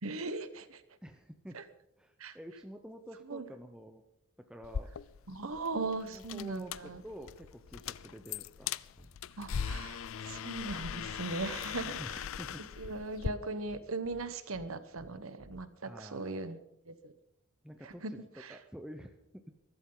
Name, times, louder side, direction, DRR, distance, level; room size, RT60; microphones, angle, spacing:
voice 1, 0.0-0.8 1.5-1.6 2.2-2.4 3.3-3.5 5.3-7.0 9.4-12.2 12.8-17.1 17.8-18.1 18.4-18.6, right 3 dB, 70° right, 11 dB, 1.2 m, -39 dB
voice 2, 1.0-1.6 2.0-4.0 4.5-4.9 6.0-8.7 11.8-12.7 15.8-16.6 17.6-18.2 18.5-19.4, equal, 5° right, 5 dB, 0.8 m, -48 dB
sound 1, 4.6-13.3, left 7 dB, 65° left, 0.4 m, -40 dB
sound 2, 9.0-9.1 9.4-9.5 9.8-10.0 10.2-10.4 10.7-10.8 11.1-11.2 11.5-11.7 12.0-12.5 12.8-12.9 13.2-13.4 13.7-13.8 14.1-14.2 14.5-14.7 15.0-15.1 15.4-15.6, equal, 15° left, 1.4 m, -54 dB
22.5 x 13.0 x 3.9 m, 0.83 s
head